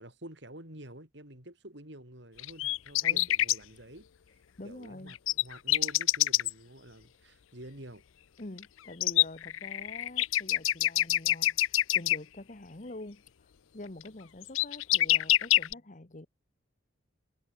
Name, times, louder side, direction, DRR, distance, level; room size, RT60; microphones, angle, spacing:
voice 1, 0.0-4.1 4.6-8.0, right 1 dB, 60° right, 6.1 m, -48 dB
sound 1, 2.4-3.6 5.1-6.5 8.6-8.7 9.0-12.2 14.0-14.1 14.4-15.7, left 15 dB, 85° left, 0.5 m, -25 dB
voice 2, 4.6-5.1 8.4-13.2 13.7-16.3, left 2 dB, 40° left, 1.2 m, -46 dB
head